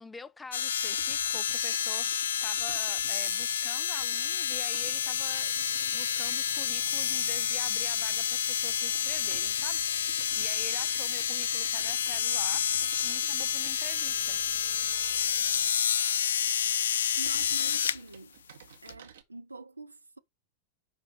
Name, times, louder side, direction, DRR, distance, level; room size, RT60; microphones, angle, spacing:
voice 1, 0.0-12.6 13.0-14.4, left 4 dB, 10° left, 0.6 m, -47 dB
sound 1, 0.5-18.0 18.9-19.0, left 8 dB, 65° left, 0.4 m, -29 dB
Computer keyboard, 0.8-19.2, right 7 dB, 60° right, 1.5 m, -53 dB
sound 2, 4.8-15.7, right 10 dB, 40° right, 1.6 m, -57 dB
voice 2, 17.1-18.4 18.8-20.2, right 3 dB, 80° right, 0.8 m, -45 dB
5.9 x 4.9 x 6.3 m
figure-of-eight pair, 90°, 0 cm